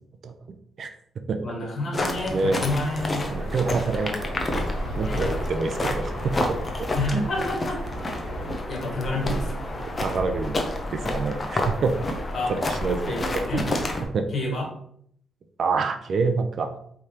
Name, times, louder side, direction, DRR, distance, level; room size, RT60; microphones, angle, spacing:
voice 1, 1.4-3.3 5.0-5.3 6.9-7.8 8.7-9.7 12.3-12.5 13.0-13.7 14.3-14.7, left 1 dB, 55° left, -1 dB, 1.7 m, -29 dB
sound 1, 1.9-14.0, left 1 dB, 30° left, 0.8 m, -29 dB
sound 2, 2.1-8.6, right 2 dB, 90° right, 1.1 m, -39 dB
voice 2, 2.3-2.6 3.3-4.2 4.5-4.7 5.0-6.9 9.8-10.6 10.9-11.9 12.5-13.2 13.5-13.7 14.1-14.3 15.6-16.7, right 4 dB, 55° right, 7 dB, 0.5 m, -27 dB
4.8 x 3.4 x 2.9 m, 0.65 s
cardioid pair, 90°, 0 cm